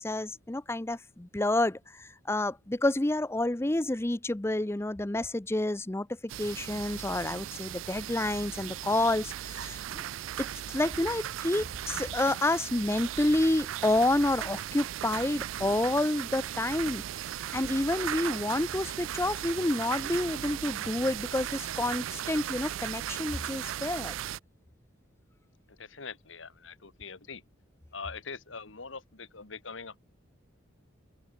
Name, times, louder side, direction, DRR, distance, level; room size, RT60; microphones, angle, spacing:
voice 1, 0.0-6.1 6.4-10.0 10.4-17.0 17.5-24.1, left 1 dB, 15° left, 0.5 m, -29 dB
sound 1, 6.3-24.4, right 11 dB, 85° right, 0.4 m, -37 dB
voice 2, 25.7-27.4 27.9-30.0, left 5 dB, 80° left, 1.8 m, -43 dB
head